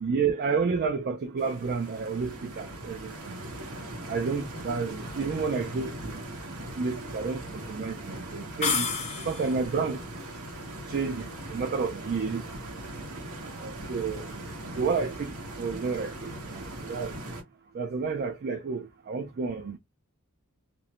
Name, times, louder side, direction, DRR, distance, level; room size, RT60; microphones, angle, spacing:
voice 1, 0.0-3.4 4.1-6.2 6.8-8.9 9.3-10.0 10.9-12.4 13.6-14.3 14.8-15.3 15.6-17.1 17.7-19.8, right 5 dB, 45° right, 0.3 m, -30 dB
Stream, 1.4-17.4, right 1 dB, 85° right, 0.9 m, -40 dB
sound 1, 8.6-9.7, left 5 dB, 30° left, 0.6 m, -29 dB
2.5 x 2.0 x 2.7 m
head